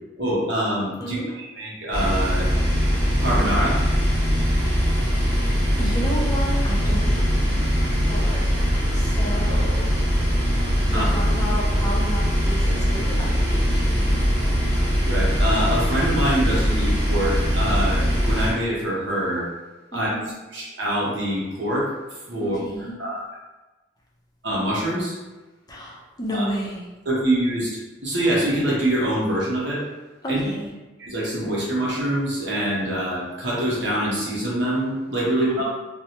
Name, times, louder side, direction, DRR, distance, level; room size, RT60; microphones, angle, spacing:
voice 1, 0.2-2.5 3.2-3.8 10.9-11.0 15.0-19.5 19.9-20.1 20.5-21.9 22.3-22.6 23.0-23.3 24.4-25.2 26.3-26.4 27.1-27.7 28.0-29.8 30.3-30.4 31.0-35.6, right 1 dB, 65° right, -5 dB, 0.9 m, -24 dB
voice 2, 1.0-1.3 4.6-4.9 5.8-7.1 7.4-10.0 10.9-14.2 19.9-20.3 22.4-23.0 25.7-26.9 30.2-30.7 35.6-35.7, equal, 20° left, -4 dB, 0.5 m, -32 dB
sound 1, 1.9-18.5, equal, 25° right, 1.0 m, -21 dB
3.3 x 2.1 x 2.8 m, 1.2 s
head